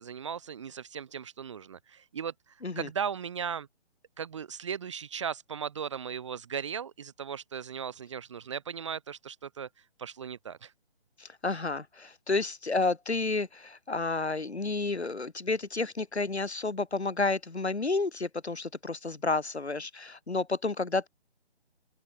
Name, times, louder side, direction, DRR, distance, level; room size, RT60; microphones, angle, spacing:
voice 1, 0.0-2.3 2.8-3.7 4.2-9.7 10.0-10.7, right 7 dB, 30° right, 0.8 m, -37 dB
voice 2, 11.2-21.1, left 3 dB, 75° left, 2.5 m, -31 dB
open air
figure-of-eight pair, 145°, 33 cm